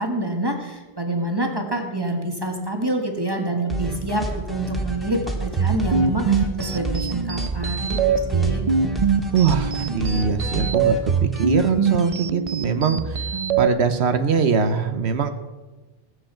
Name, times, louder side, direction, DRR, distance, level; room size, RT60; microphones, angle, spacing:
voice 1, 0.0-8.6, right 1 dB, 20° right, 2 dB, 1.6 m, -27 dB
sound 1, 3.7-12.1, right 1 dB, ahead, 1.9 m, -31 dB
sound 2, 5.4-13.7, right 6 dB, 40° right, 0.6 m, -23 dB
voice 2, 9.3-11.0 11.4-13.3 13.6-15.3, right 6 dB, 75° right, 8 dB, 1.2 m, -22 dB
20.5 x 8.0 x 4.5 m, 1.2 s
omnidirectional pair, 1.1 m